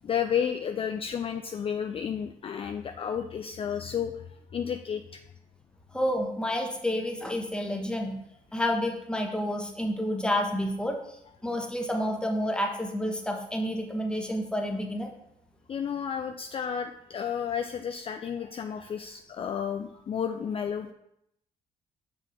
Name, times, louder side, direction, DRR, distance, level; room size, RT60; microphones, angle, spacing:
voice 1, 0.0-5.2 15.7-20.9, left 8 dB, 35° left, 6 dB, 0.4 m, -32 dB
voice 2, 5.9-8.2 8.5-15.1, left 1 dB, 5° left, 2 dB, 1.2 m, -29 dB
5.9 x 4.9 x 3.4 m, 0.79 s
supercardioid pair, 65°, 16 cm